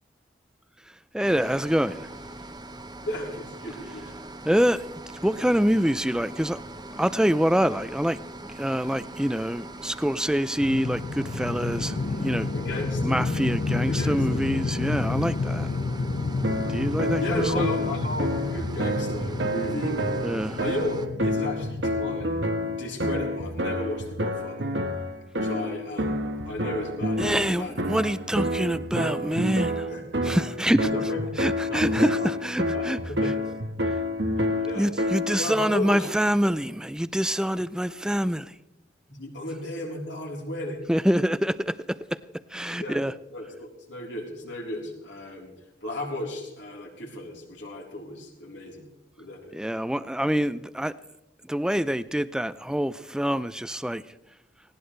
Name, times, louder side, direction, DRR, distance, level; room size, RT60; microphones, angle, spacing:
voice 1, 1.1-2.1 4.4-4.8 5.2-6.6 7.0-8.2 8.6-12.5 13.0-15.7 16.7-17.7 20.2-20.6 27.2-29.9 30.2-30.9 31.4-33.0 33.2-33.3 34.8-38.5 40.9-42.0 42.5-43.1 49.5-50.9 51.5-54.0, equal, 5° right, 0.5 m, -25 dB
sound 1, 1.2-21.1, right 2 dB, 25° right, 0.8 m, -41 dB
voice 2, 3.0-4.1 12.5-13.1 13.9-14.5 17.2-22.3 22.8-24.7 25.3-27.7 29.9-30.0 30.8-31.3 31.7-31.8 32.2-32.3 32.7-33.3 34.6-34.9 35.3-36.1 39.1-40.8 42.8-43.0 43.3-45.5 45.8-48.9 49.2-49.5, left 1 dB, 80° left, 3.9 m, -34 dB
sound 2, 10.6-22.8, left 3 dB, 50° left, 0.6 m, -30 dB
sound 3, 16.4-35.5, equal, 70° right, 1.3 m, -29 dB
19.0 x 18.0 x 3.3 m
head